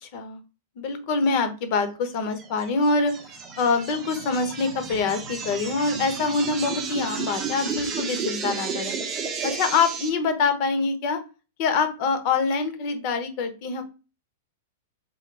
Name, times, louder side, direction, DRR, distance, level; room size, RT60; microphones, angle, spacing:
voice 1, 0.0-0.4 0.8-3.1 3.6-8.9 9.4-11.2 11.6-13.8, left 4 dB, 35° left, 8 dB, 0.9 m, -25 dB
sound 1, 2.4-10.1, right 5 dB, 20° right, 0.8 m, -32 dB
3.9 x 2.6 x 4.6 m, 0.31 s
supercardioid pair, 170°, 0 cm